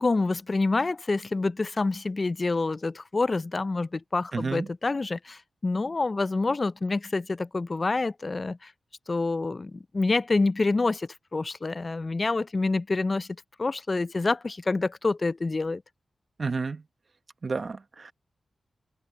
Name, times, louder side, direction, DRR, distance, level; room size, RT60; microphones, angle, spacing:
voice 1, 0.0-8.7 9.1-13.3 13.6-15.8, left 3 dB, 35° left, 0.4 m, -27 dB
voice 2, 4.3-4.6 16.4-16.8 17.4-18.1, right 4 dB, 50° right, 1.1 m, -30 dB
cardioid pair, 80°, 0 cm